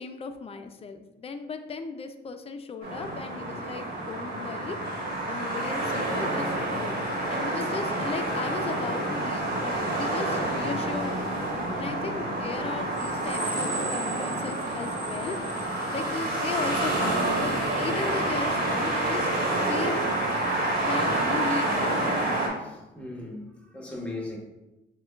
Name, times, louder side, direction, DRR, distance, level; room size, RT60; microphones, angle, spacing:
voice 1, 0.0-7.0 7.3-15.4 15.9-19.3 19.7-20.0 20.8-22.0, left 4 dB, 30° left, 7 dB, 0.4 m, -36 dB
sound 1, 2.8-22.5, right 1 dB, 50° right, 1.3 m, -28 dB
voice 2, 11.8-12.2 20.7-21.1 22.6-24.4, left 2 dB, 5° left, -2 dB, 1.1 m, -39 dB
6.5 x 2.2 x 2.3 m, 0.99 s
cardioid pair, 90°, 20 cm